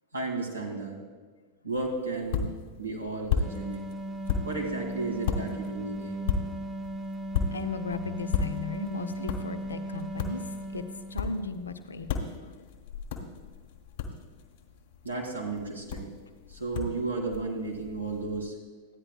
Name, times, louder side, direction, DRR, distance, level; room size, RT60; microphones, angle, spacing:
voice 1, 0.1-1.0 1.6-2.5 2.8-3.9 4.4-6.3 15.0-16.1 16.5-18.6, right 3 dB, 85° right, -2 dB, 2.0 m, -33 dB
sound 1, 1.7-18.4, left 6 dB, 50° left, 1.3 m, -36 dB
sound 2, 3.4-11.5, right 1 dB, 20° right, 0.4 m, -37 dB
voice 2, 7.5-10.8 11.1-12.2, left 4 dB, 75° left, 9 dB, 0.5 m, -36 dB
14.5 x 9.8 x 2.3 m, 1.4 s
figure-of-eight pair, 90°, 0 cm